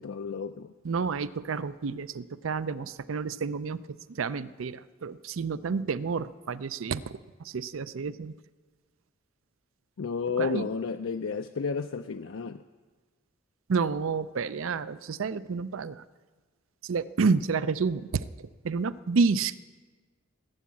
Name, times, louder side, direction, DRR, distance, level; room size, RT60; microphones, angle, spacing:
voice 1, 0.0-0.7 10.0-12.6, left 5 dB, 75° left, 6 dB, 0.5 m, -32 dB
voice 2, 0.8-3.8 4.1-8.3 10.4-10.7 13.7-16.0 16.8-18.3 18.6-19.6, right 5 dB, 80° right, 16 dB, 0.5 m, -29 dB
18.5 x 8.5 x 8.4 m, 1.4 s
head